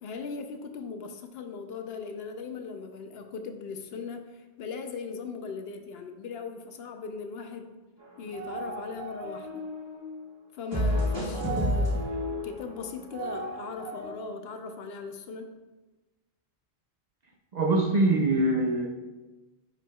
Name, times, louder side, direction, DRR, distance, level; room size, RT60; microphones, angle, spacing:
voice 1, 0.0-7.7 8.2-9.6 10.5-15.5, left 5 dB, 70° left, 6 dB, 0.8 m, -39 dB
sound 1, 8.0-10.1 10.7-14.1, equal, 25° right, 1.7 m, -31 dB
voice 2, 17.5-18.9, right 2 dB, 55° right, 1 dB, 0.5 m, -23 dB
9.0 x 4.5 x 2.3 m, 1.2 s
omnidirectional pair, 1.1 m